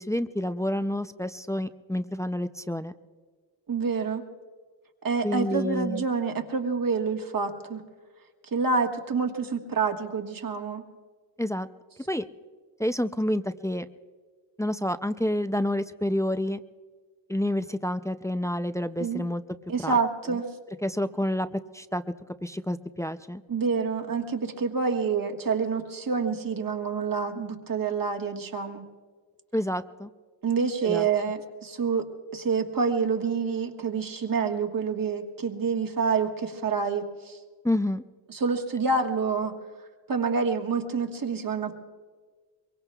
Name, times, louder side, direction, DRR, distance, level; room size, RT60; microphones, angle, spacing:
voice 1, 0.0-2.9 5.2-6.0 11.4-11.7 12.1-12.2 12.8-13.9 14.6-16.6 17.3-19.4 19.8-20.0 20.3-20.4 20.8-22.0 22.4-23.4 29.5-30.1 30.8-31.1 37.6-38.0, left 1 dB, 10° left, 10 dB, 0.3 m, -28 dB
voice 2, 3.7-4.2 5.0-7.8 8.5-10.8 19.0-19.2 19.7-20.5 23.5-28.8 30.4-32.1 32.3-37.4 38.3-39.5 40.1-41.7, right 5 dB, 45° right, 3 dB, 1.5 m, -27 dB
23.5 x 23.0 x 2.3 m, 1.5 s
wide cardioid pair, 100°, 46 cm